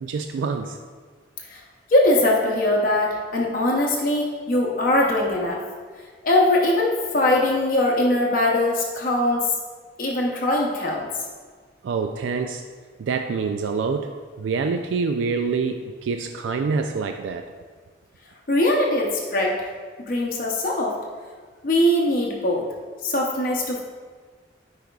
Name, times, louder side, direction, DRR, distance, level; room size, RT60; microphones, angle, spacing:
voice 1, 0.0-0.8 11.8-12.6 13.0-17.5, right 4 dB, 75° right, 6 dB, 0.3 m, -26 dB
voice 2, 1.9-5.6 6.2-9.5 10.0-11.1 18.5-19.7 20.1-21.0 21.6-22.7 23.0-23.8, left 1 dB, 45° left, -2 dB, 0.7 m, -21 dB
10.5 x 4.8 x 2.3 m, 1.5 s
head